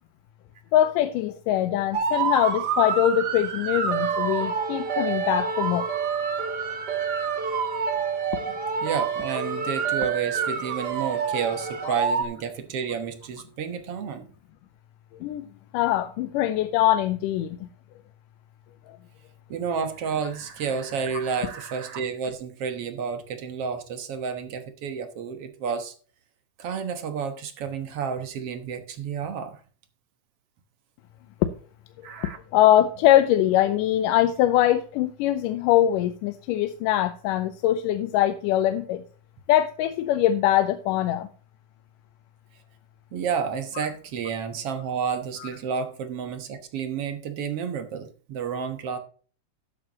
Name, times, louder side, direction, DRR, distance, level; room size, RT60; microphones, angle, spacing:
voice 1, 0.7-5.9 11.9-12.0 15.2-15.5 15.7-17.6 31.4-31.5 32.2-39.0 39.5-41.3, left 12 dB, 90° left, 10 dB, 2.3 m, -22 dB
sound 1, 1.9-12.2, right 6 dB, 85° right, 0.9 m, -27 dB
voice 2, 8.8-14.2 19.5-25.9 26.6-29.6 32.0-32.4 43.1-49.0, right 6 dB, 60° right, 8 dB, 1.8 m, -31 dB
12.5 x 9.2 x 2.9 m, 0.40 s
omnidirectional pair, 3.7 m